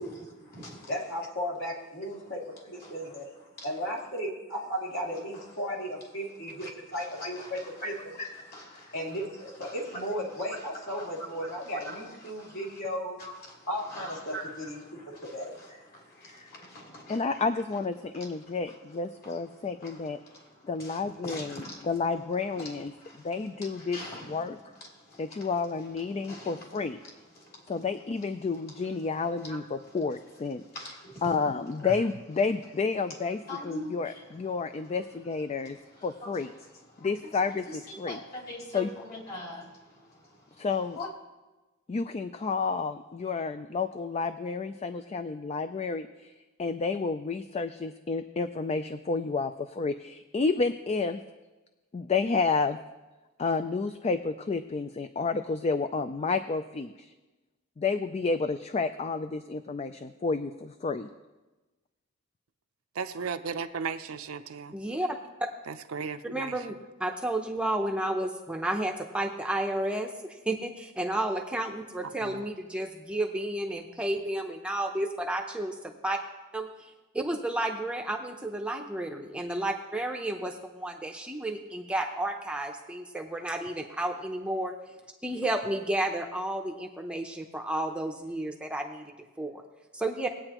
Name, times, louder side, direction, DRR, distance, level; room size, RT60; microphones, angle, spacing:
voice 1, 0.0-1.1 2.0-3.9 5.1-5.6 6.2-12.8 13.2-41.1, left 1 dB, 45° left, 3.0 m, -46 dB
voice 2, 0.9-3.3 3.6-6.7 6.9-7.6 8.9-13.2 13.7-14.8 15.2-15.6, equal, 65° left, 2.9 m, -35 dB
voice 3, 17.1-20.2 20.6-21.4 21.9-22.9 23.2-24.0 24.3-24.5 25.2-27.0 27.7-29.6 29.9-30.6 31.2-33.4 33.7-34.1 34.4-36.5 37.0-37.6 38.0-38.2 38.7-38.9 40.6-41.0 41.9-46.3 46.6-51.2 51.9-52.8 53.4-57.1 57.8-61.1, left 4 dB, 30° left, 0.3 m, -30 dB
voice 4, 62.9-64.7 65.7-66.7 72.2-72.4, right 5 dB, 70° right, 0.6 m, -35 dB
voice 5, 64.7-65.2 66.3-66.7 67.0-76.2 76.5-84.7 85.2-89.1 89.4-89.6 89.9-90.3, right 1 dB, 5° right, 0.7 m, -32 dB
20.0 x 8.8 x 3.0 m
head